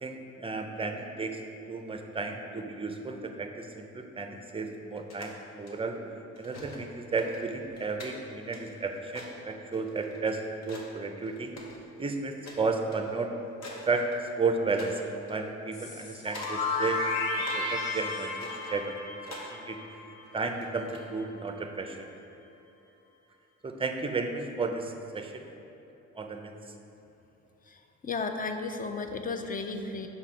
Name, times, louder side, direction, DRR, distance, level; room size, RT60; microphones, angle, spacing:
voice 1, 0.0-1.4 1.7-6.0 6.4-11.5 12.0-13.3 13.9-14.1 14.4-15.0 15.3-17.0 17.3-18.9 19.3-19.8 20.3-22.1 23.6-25.5 26.1-26.5, right 4 dB, 20° right, 5 dB, 0.5 m, -33 dB
sound 1, 5.0-5.7 6.4-6.8 7.1-10.9 11.2-12.0 12.4-12.6 12.9-13.1 13.6-14.5 14.8-14.9 15.3-15.4 16.0-16.5 16.9-17.6 18.1-19.5 20.2-21.1, left 2 dB, 60° left, 1.1 m, -46 dB
sound 2, 15.7-20.5, left 3 dB, 90° left, 1.0 m, -33 dB
voice 2, 27.7-30.1, left 4 dB, 30° left, 6 dB, 0.5 m, -34 dB
4.9 x 4.1 x 5.9 m, 2.9 s
cardioid pair, 90°, 30 cm